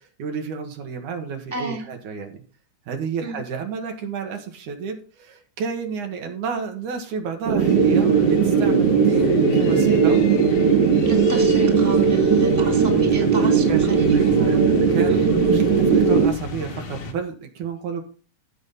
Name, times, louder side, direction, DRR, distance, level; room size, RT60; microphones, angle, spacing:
voice 1, 0.2-2.4 2.9-10.2 13.4-18.0, right 6 dB, 85° right, 4 dB, 3.2 m, -31 dB
voice 2, 1.5-1.9 3.2-3.4 10.1-10.3 11.0-14.8 15.1-15.4, right 2 dB, 10° left, 0 dB, 1.1 m, -31 dB
sound 1, 7.5-16.3, right 6 dB, 60° right, 1.9 m, -18 dB
sound 2, 7.6-17.1, left 3 dB, 60° left, 2.6 m, -33 dB
15.0 x 5.9 x 4.1 m, 0.38 s
omnidirectional pair, 3.4 m